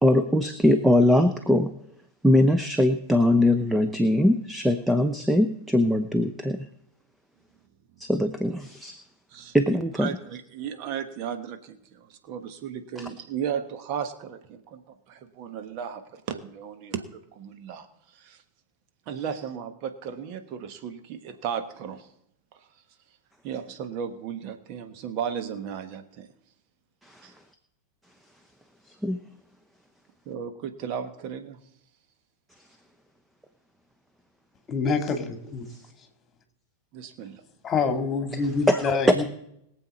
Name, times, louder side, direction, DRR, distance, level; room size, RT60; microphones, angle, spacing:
voice 1, 0.0-1.7 2.2-6.6 8.0-9.0 9.5-10.1 27.0-27.3 28.9-29.2 35.7-35.8 38.3-38.4 38.7-39.2, left 1 dB, 5° right, 8 dB, 0.8 m, -21 dB
voice 2, 9.9-18.4 19.1-22.1 22.5-22.7 23.4-26.3 27.2-27.3 30.2-31.6 36.9-37.4, right 8 dB, 40° right, 8 dB, 1.3 m, -35 dB
voice 3, 34.7-35.7 37.6-39.2, left 4 dB, 25° left, 5 dB, 2.2 m, -26 dB
22.0 x 7.8 x 4.2 m, 0.76 s
figure-of-eight pair, 90°, 0 cm